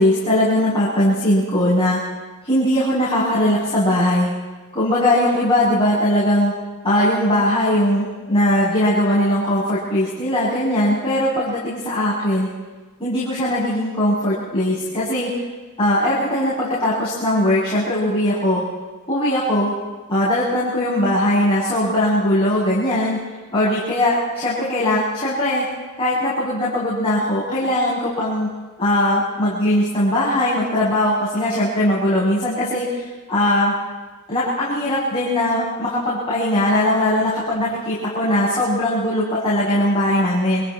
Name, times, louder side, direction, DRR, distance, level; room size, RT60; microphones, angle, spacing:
voice 1, 0.0-2.0 2.5-4.3 4.7-6.5 6.8-12.5 13.0-15.3 15.8-18.6 19.1-19.7 20.1-23.2 23.5-25.6 26.0-28.5 28.8-33.0 33.3-33.7 34.3-40.6, left 1 dB, 25° left, -9 dB, 7.8 m, -20 dB
29.0 x 27.0 x 4.4 m, 1.3 s
head